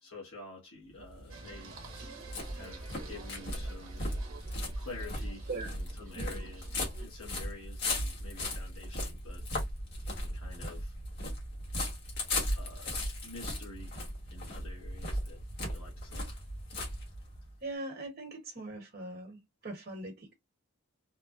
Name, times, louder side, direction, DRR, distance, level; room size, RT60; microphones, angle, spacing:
voice 1, 0.0-1.7 2.5-4.0 4.7-9.4 10.2-10.9 12.5-12.9 13.2-14.0 14.3-16.4, left 3 dB, 70° left, 1.3 m, -49 dB
sound 1, 1.0-17.5, left 1 dB, 50° left, 1.4 m, -37 dB
Singing, 1.3-7.1, right 4 dB, 65° right, 1.1 m, -50 dB
voice 2, 17.6-20.3, right 2 dB, 45° right, 1.3 m, -41 dB
3.5 x 2.1 x 2.4 m
head